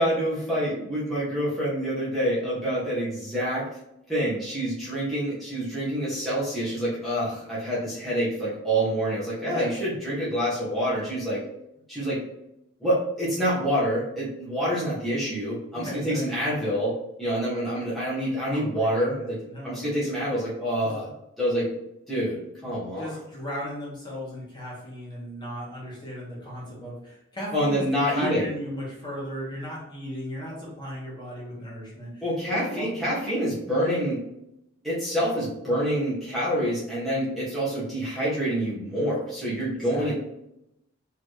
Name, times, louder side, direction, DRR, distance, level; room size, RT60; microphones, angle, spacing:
voice 1, 0.0-3.7 4.1-11.4 11.9-12.2 12.8-16.9 17.2-19.4 19.6-21.1 21.4-21.7 22.1-23.1 27.5-28.5 32.2-34.2 34.8-40.1, equal, ahead, -11 dB, 1.3 m, -27 dB
voice 2, 15.7-16.5 18.5-19.9 20.8-20.9 23.0-32.9 39.9-40.1, equal, 20° left, -6 dB, 1.4 m, -36 dB
4.6 x 3.2 x 3.1 m, 0.83 s
head